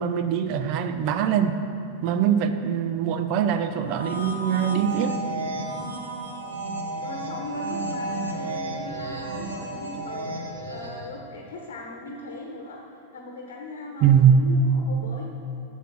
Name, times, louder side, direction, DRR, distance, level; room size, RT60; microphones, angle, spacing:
voice 1, 0.0-1.6 2.0-5.2 14.0-14.4, right 8 dB, 45° right, 9 dB, 0.6 m, -22 dB
sound 1, 3.8-11.2, right 2 dB, 70° right, 1.0 m, -32 dB
voice 2, 7.0-12.8 13.1-15.3, left 2 dB, 55° left, 1 dB, 1.1 m, -38 dB
9.0 x 6.3 x 5.9 m, 2.8 s
figure-of-eight pair, 90°, 0 cm